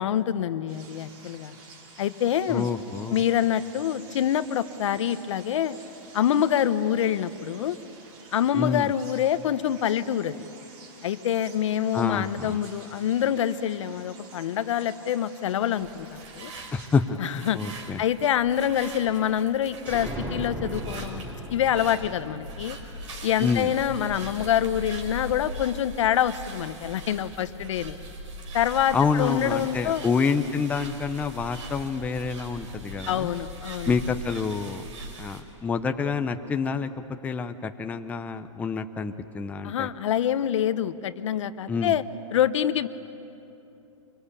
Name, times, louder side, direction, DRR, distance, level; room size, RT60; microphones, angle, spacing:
voice 1, 0.0-1.5 2.0-2.7 3.1-5.8 6.1-7.8 8.3-10.4 11.0-16.5 17.2-17.6 18.0-22.8 23.2-28.0 28.5-30.0 33.1-33.9 39.6-42.0 42.3-42.9, left 10 dB, 65° left, 13 dB, 1.0 m, -26 dB
sound 1, 0.7-17.0, right 4 dB, 40° right, 4.7 m, -50 dB
voice 2, 2.5-3.2 8.5-8.9 11.9-12.6 16.7-18.0 23.4-23.7 28.9-33.3 33.8-34.8 35.2-36.9 37.2-39.9 41.7-42.0, left 5 dB, 10° left, 7 dB, 0.6 m, -27 dB
sound 2, 15.7-35.4, right 1 dB, 70° right, 4.9 m, -40 dB
sound 3, 19.9-23.5, right 1 dB, 5° right, 4.4 m, -37 dB
26.0 x 23.0 x 8.4 m, 2.9 s
hypercardioid pair, 145°, 16 cm